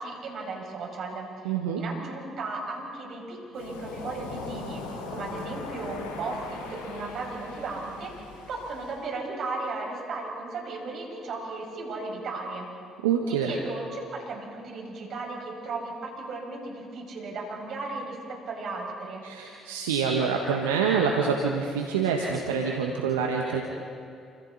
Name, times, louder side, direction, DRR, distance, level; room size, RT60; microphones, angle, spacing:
voice 1, 0.0-8.1 8.5-12.7 13.4-19.2, right 3 dB, 60° right, 0 dB, 6.3 m, -36 dB
voice 2, 1.4-1.8 13.0-13.5 19.2-23.6, right 6 dB, 85° right, 1 dB, 1.5 m, -26 dB
Waves surf, 3.5-9.0, left 3 dB, 75° left, 6.2 m, -40 dB
29.0 x 26.5 x 4.2 m, 2.6 s
hypercardioid pair, 55°, 0 cm